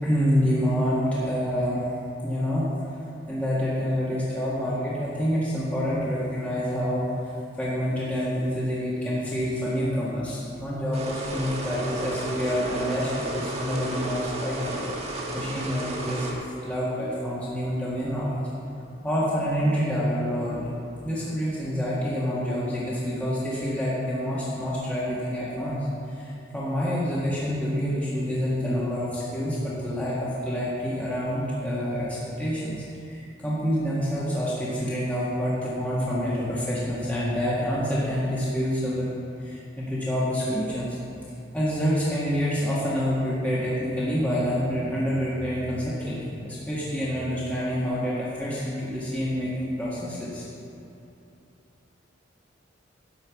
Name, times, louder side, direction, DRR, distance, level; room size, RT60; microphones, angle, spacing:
voice 1, 0.0-1.9 2.2-2.7 3.2-7.3 7.6-18.4 19.0-20.7 21.0-25.8 26.1-39.1 39.4-40.9 41.5-50.4, equal, 10° left, -9 dB, 1.6 m, -27 dB
sound 1, 10.9-16.3, right 1 dB, 35° right, 1.2 m, -33 dB
11.0 x 5.4 x 7.0 m, 2.8 s
head